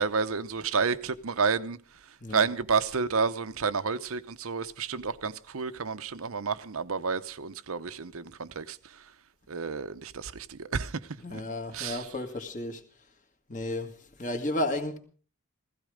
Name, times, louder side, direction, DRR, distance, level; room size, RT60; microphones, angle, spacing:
voice 1, 0.0-1.8 2.3-9.0 9.5-11.0 11.3-11.4 11.7-12.0, right 5 dB, 70° right, 0.8 m, -30 dB
voice 2, 11.2-12.8 13.5-15.0, left 1 dB, 35° left, 2.0 m, -33 dB
16.0 x 15.5 x 5.0 m
head